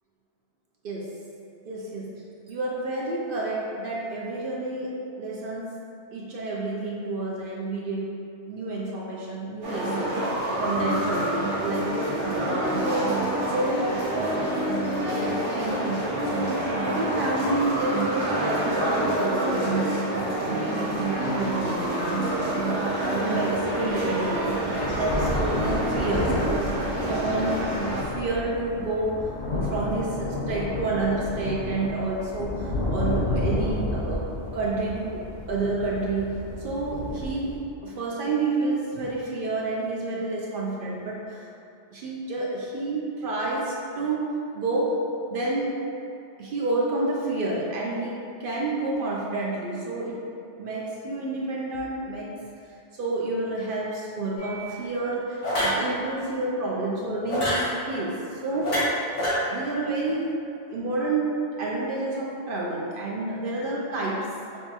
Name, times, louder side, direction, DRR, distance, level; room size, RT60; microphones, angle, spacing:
voice 1, 0.8-1.1 1.7-2.2 2.5-5.8 6.1-10.2 10.6-13.0 13.5-14.4 15.1-26.7 27.1-29.1 29.5-34.2 34.5-35.2 35.5-37.6 37.8-41.4 41.9-44.3 44.5-45.0 45.3-45.8 46.4-50.2 50.6-52.3 53.0-57.6 57.9-58.2 58.4-58.8 59.5-60.3 60.7-61.3 61.6-64.3, right 2 dB, 60° right, -4 dB, 0.6 m, -29 dB
sound 1, 9.6-28.0, right 1 dB, 80° right, 1.2 m, -27 dB
sound 2, 21.8-21.9 23.1-23.2 23.6-37.6, left 1 dB, 70° left, 1.0 m, -31 dB
sound 3, 54.4-54.6 55.4-55.8 57.3-57.7 58.6-59.3, equal, 85° left, 1.6 m, -25 dB
5.9 x 2.2 x 2.8 m, 2.7 s
omnidirectional pair, 1.2 m